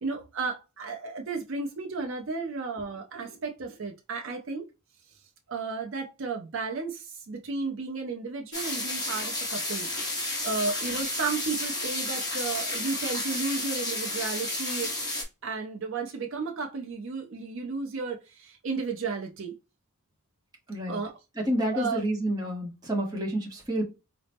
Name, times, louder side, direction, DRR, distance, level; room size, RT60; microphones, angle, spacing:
voice 1, 0.0-4.7 5.5-9.9 10.4-14.9 15.4-19.5 20.9-21.2 21.7-22.0, right 4 dB, 60° right, 0.5 m, -33 dB
sound 1, 8.5-15.2, left 2 dB, 20° left, 1.1 m, -31 dB
voice 2, 20.7-21.0 21.4-23.8, right 1 dB, 20° right, 0.8 m, -29 dB
4.0 x 2.0 x 3.3 m
head